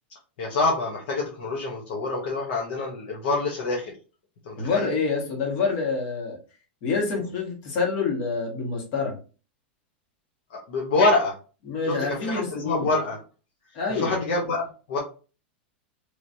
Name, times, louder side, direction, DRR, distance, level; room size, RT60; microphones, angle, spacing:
voice 1, 0.4-3.9 4.4-4.9 10.5-11.4 11.8-13.2 13.9-15.0, left 3 dB, 65° left, -2 dB, 1.0 m, -26 dB
voice 2, 4.6-6.4 6.8-9.1 11.7-12.9 13.7-14.1, left 4 dB, 45° left, -1 dB, 1.6 m, -27 dB
3.2 x 3.0 x 2.7 m, 0.35 s
supercardioid pair, 145°, 6 cm